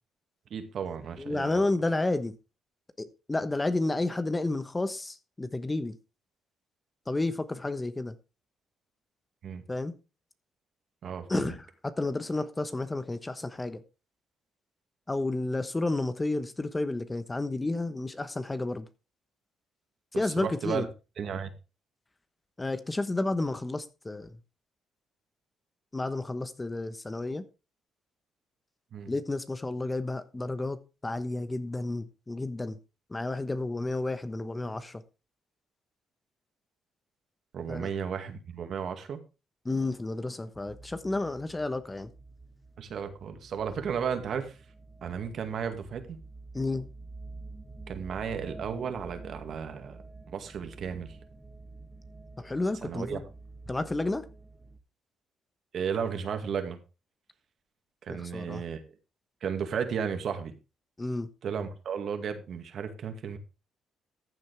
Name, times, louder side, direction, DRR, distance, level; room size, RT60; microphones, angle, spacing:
voice 1, 0.5-1.6 9.4-9.6 11.0-11.5 20.4-20.9 21.2-21.5 28.9-29.1 37.5-39.2 42.8-44.5 45.0-46.2 47.9-50.0 50.3-51.2 52.8-53.2 55.7-56.8 58.1-58.8 59.4-60.5 61.4-63.4, right 7 dB, 60° right, 2.1 m, -34 dB
voice 2, 1.2-2.4 3.0-6.0 7.1-8.1 9.7-9.9 11.3-13.8 15.1-18.9 20.1-20.9 22.6-24.4 25.9-27.4 29.1-32.8 33.1-35.0 37.7-37.9 39.6-42.1 46.5-46.9 52.4-53.2 53.7-54.3 58.1-58.6 61.0-61.3, left 2 dB, 20° left, 1.1 m, -31 dB
sound 1, 40.5-54.8, right 3 dB, 15° right, 2.0 m, -48 dB
14.5 x 7.6 x 3.5 m
cardioid pair, 90°, 0 cm